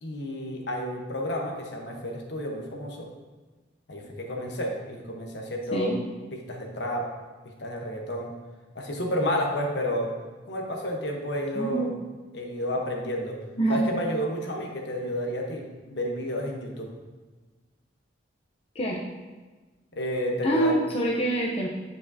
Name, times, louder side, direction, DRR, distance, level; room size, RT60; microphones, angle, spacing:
voice 1, 0.0-3.1 3.9-6.0 6.3-7.1 7.6-8.3 8.7-10.1 10.5-11.9 12.3-13.4 13.7-16.9 19.9-20.8, equal, 65° left, 1 dB, 1.1 m, -31 dB
voice 2, 11.5-11.9 13.6-13.8 18.7-19.0 20.4-21.7, right 1 dB, 30° left, -3 dB, 0.7 m, -25 dB
9.2 x 5.3 x 2.7 m, 1.3 s
head